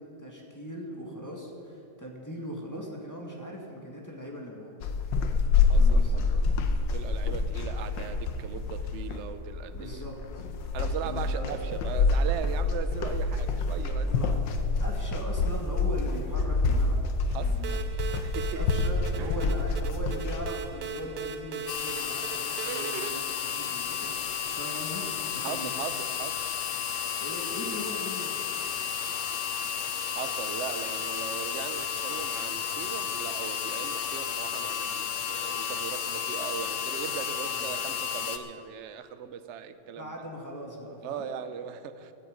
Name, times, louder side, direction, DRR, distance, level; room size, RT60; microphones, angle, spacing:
voice 1, 0.0-4.8 5.7-6.3 9.7-10.4 11.0-11.6 14.0-14.4 14.8-17.0 17.4-17.8 18.5-25.7 27.2-28.4 37.5-37.8 39.9-41.2, equal, 10° left, -1 dB, 1.9 m, -40 dB
sound 1, 4.8-20.5, left 3 dB, 85° left, 1.6 m, -27 dB
voice 2, 5.7-6.5 6.9-10.1 10.7-14.1 17.3-17.6 18.2-18.7 19.2-19.4 25.4-26.4 30.1-40.2 41.0-42.1, right 8 dB, 55° right, 10 dB, 0.8 m, -39 dB
sound 2, 17.6-23.1, right 7 dB, 70° right, 1.3 m, -38 dB
sound 3, 21.7-38.4, left 8 dB, 55° left, 0.9 m, -32 dB
16.0 x 13.0 x 5.2 m, 2.8 s
omnidirectional pair, 1.9 m